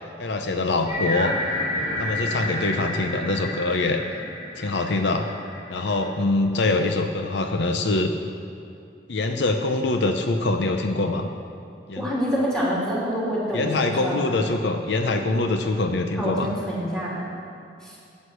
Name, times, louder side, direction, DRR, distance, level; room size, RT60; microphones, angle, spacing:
voice 1, 0.2-1.3 2.0-4.0 4.5-5.3 5.7-8.1 9.1-11.3 11.9-12.1 13.5-16.5, left 2 dB, 80° left, 5 dB, 0.7 m, -24 dB
sound 1, 0.9-6.1, left 1 dB, 45° left, 2.4 m, -30 dB
voice 2, 12.0-14.2 16.1-17.2 17.8-18.0, equal, 5° left, -7 dB, 3.1 m, -26 dB
9.6 x 8.4 x 6.3 m, 2.5 s
head